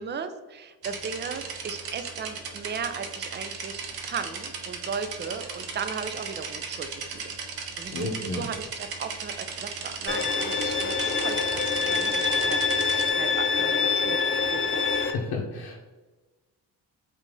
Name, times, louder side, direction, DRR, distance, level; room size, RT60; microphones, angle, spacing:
voice 1, 0.0-7.3 7.8-14.8, right 5 dB, 25° right, 9 dB, 0.5 m, -36 dB
sound 1, 0.8-13.1, right 5 dB, 60° right, 0.8 m, -37 dB
voice 2, 7.9-8.4 15.1-15.8, left 3 dB, 70° left, -2 dB, 0.8 m, -32 dB
Bowed string instrument, 10.1-15.1, left 5 dB, 30° left, 0.7 m, -25 dB
5.1 x 2.7 x 3.6 m, 1.2 s
cardioid pair, 70°, 40 cm